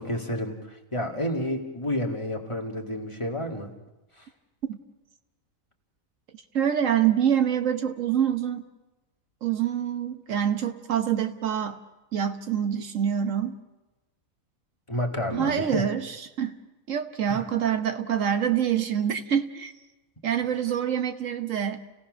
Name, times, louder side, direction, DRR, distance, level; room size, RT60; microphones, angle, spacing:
voice 1, 0.0-3.7 4.2-4.3 14.9-15.9 17.3-17.4, left 1 dB, 20° left, 2 dB, 1.9 m, -30 dB
voice 2, 6.5-8.6 9.4-11.8 12.1-13.5 15.3-16.6 16.9-19.7 20.2-21.8, right 9 dB, 70° right, 7 dB, 1.4 m, -26 dB
30.0 x 17.0 x 6.2 m, 1.1 s
omnidirectional pair, 1.4 m